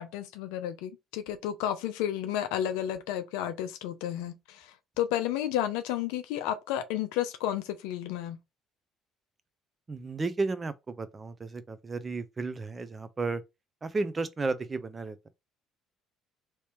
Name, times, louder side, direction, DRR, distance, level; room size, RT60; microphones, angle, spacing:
voice 1, 0.0-8.4, left 11 dB, 80° left, 0.4 m, -32 dB
voice 2, 9.9-13.4 13.8-15.3, right 3 dB, 30° right, 0.6 m, -33 dB
3.3 x 3.0 x 2.9 m
hypercardioid pair, 65°, 0 cm